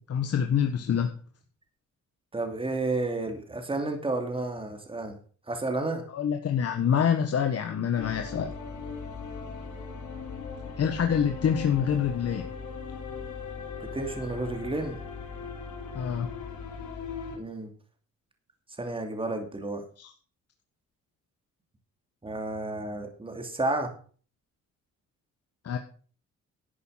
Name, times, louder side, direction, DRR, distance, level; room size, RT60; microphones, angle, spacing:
voice 1, 0.1-1.1 6.1-8.5 10.8-12.5 15.9-16.3 20.0-20.1 25.6-25.8, left 8 dB, 55° left, 5 dB, 1.4 m, -26 dB
voice 2, 2.3-5.2 5.5-6.0 13.8-15.0 17.3-17.7 18.8-19.8 22.2-23.9, right 2 dB, 15° right, 5 dB, 2.8 m, -31 dB
sound 1, 8.0-17.4, left 5 dB, 75° left, 4.3 m, -38 dB
12.0 x 8.3 x 5.8 m, 0.41 s
cardioid pair, 90°, 30 cm